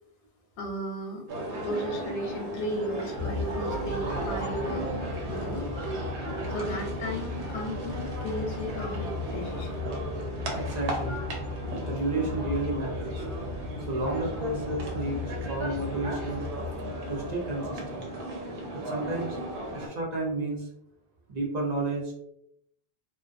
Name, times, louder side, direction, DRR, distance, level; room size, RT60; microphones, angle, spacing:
voice 1, 0.6-1.2 1.6-4.8 5.3-5.6 6.5-9.8, equal, 90° left, 2 dB, 0.9 m, -34 dB
sound 1, 1.3-19.9, right 1 dB, 85° right, 0.9 m, -36 dB
Motor vehicle (road) / Engine starting / Accelerating revving vroom, 3.2-18.1, left 3 dB, 45° left, 0.6 m, -37 dB
voice 2, 10.5-11.3 11.9-13.2 13.9-16.4 17.1-18.1 18.7-19.4 19.7-20.7 21.3-22.1, right 2 dB, 50° right, -1 dB, 0.5 m, -32 dB
2.3 x 2.1 x 2.5 m, 0.75 s
omnidirectional pair, 1.1 m